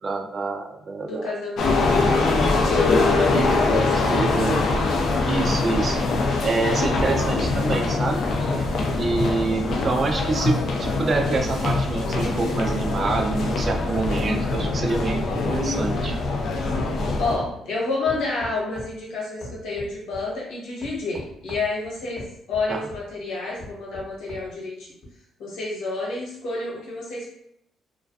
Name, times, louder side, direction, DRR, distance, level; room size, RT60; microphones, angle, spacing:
voice 1, 0.0-1.3 3.3-4.6 5.3-6.0 6.4-8.5 9.0-16.2 22.7-22.9, right 3 dB, 45° right, 4 dB, 0.4 m, -27 dB
voice 2, 1.0-1.8 2.6-4.2 17.1-24.9 25.4-27.3, left 3 dB, 85° left, -4 dB, 0.9 m, -29 dB
sound 1, 1.6-17.4, left 3 dB, 70° left, 0.4 m, -23 dB
sound 2, 13.9-14.9 15.3-17.6 18.1-19.0 19.4-20.3 20.8-23.1 23.6-24.5 25.0-25.1, left 1 dB, 40° left, 0.7 m, -40 dB
2.4 x 2.2 x 2.3 m, 0.74 s
cardioid pair, 90°, 0 cm